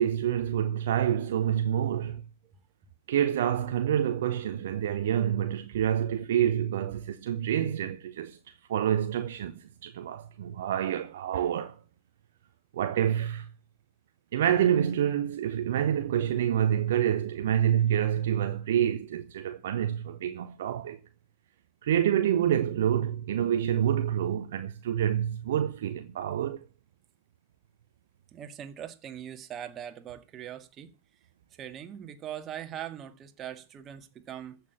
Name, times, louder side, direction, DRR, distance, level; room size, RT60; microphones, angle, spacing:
voice 1, 0.0-2.2 3.1-8.4 8.7-11.8 12.7-13.5 14.3-21.0 21.8-26.7, right 10 dB, 60° right, 0.9 m, -27 dB
voice 2, 28.3-30.9 31.6-34.6, right 10 dB, 30° right, 1.9 m, -41 dB
14.5 x 6.4 x 8.7 m
figure-of-eight pair, 90°, 0 cm